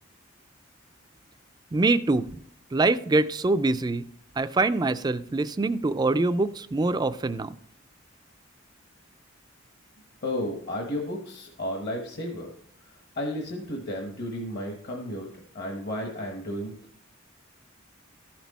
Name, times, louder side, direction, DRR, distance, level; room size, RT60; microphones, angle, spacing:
voice 1, 1.7-2.4 2.7-4.1 4.4-7.6, right 2 dB, 20° right, 13 dB, 0.3 m, -24 dB
voice 2, 10.2-12.5 13.2-15.3 15.5-16.7, left 1 dB, 50° left, 1 dB, 1.1 m, -33 dB
14.0 x 6.1 x 4.1 m, 0.64 s
head